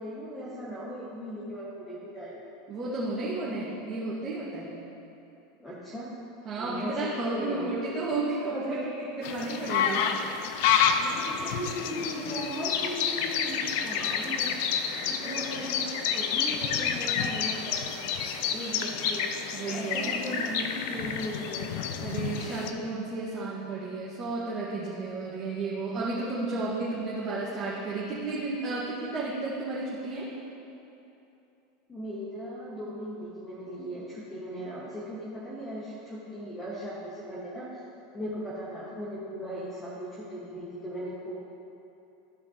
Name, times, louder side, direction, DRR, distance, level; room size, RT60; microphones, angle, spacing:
voice 1, 0.0-2.4 5.6-6.1 6.6-7.7 8.5-8.8 11.0-14.6 15.0-17.8 18.5-19.3 19.7-21.7 31.9-37.7 38.1-41.4, equal, 15° left, -8 dB, 1.6 m, -38 dB
voice 2, 2.7-4.8 6.5-8.9 9.2-10.1 15.2-15.7 19.5-20.5 22.0-30.3, right 3 dB, 35° right, -9 dB, 1.7 m, -33 dB
sound 1, 9.2-22.7, left 7 dB, 65° left, 0.6 m, -29 dB
14.5 x 5.1 x 3.0 m, 2.9 s
hypercardioid pair, 90°, 0 cm